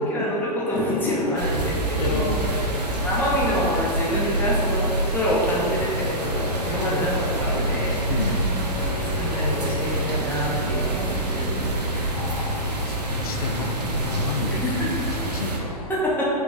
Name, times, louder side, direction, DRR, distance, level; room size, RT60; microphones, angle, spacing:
voice 1, 0.0-2.3 3.0-8.0 8.7-12.1 14.5-14.9 15.9-16.3, equal, 10° left, -6 dB, 0.8 m, -27 dB
sound 1, 0.7-11.7, left 2 dB, 55° right, 1.1 m, -35 dB
sound 2, 1.4-15.6, right 1 dB, 75° right, 0.7 m, -26 dB
voice 2, 2.0-2.6 8.1-8.4 12.1-16.0, left 4 dB, 60° left, 5 dB, 0.4 m, -31 dB
3.7 x 2.9 x 3.7 m, 2.6 s
figure-of-eight pair, 100°, 21 cm